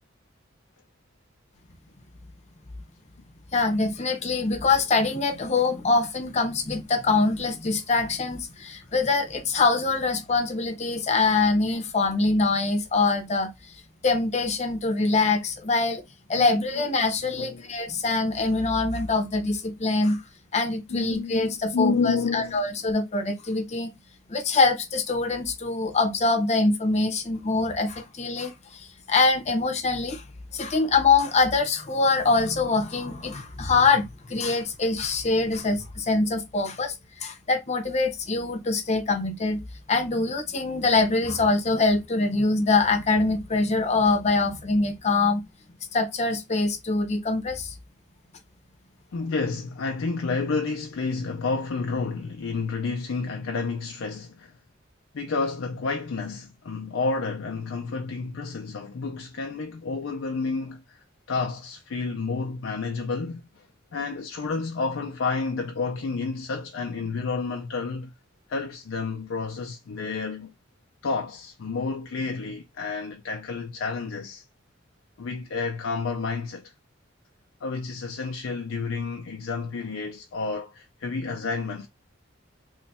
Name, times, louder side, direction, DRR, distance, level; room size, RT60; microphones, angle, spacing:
voice 1, 3.5-16.0 16.3-20.2 20.5-23.9 24.3-30.2 30.5-39.6 39.9-45.4 45.9-47.7, left 3 dB, 35° left, 0.7 m, -24 dB
voice 2, 17.4-17.8 20.9-22.6 49.1-54.5 55.1-63.7 63.9-68.1 68.5-70.5 71.0-74.4 75.2-76.7 77.6-81.9, left 4 dB, 85° left, 0.5 m, -30 dB
3.1 x 2.3 x 4.0 m
head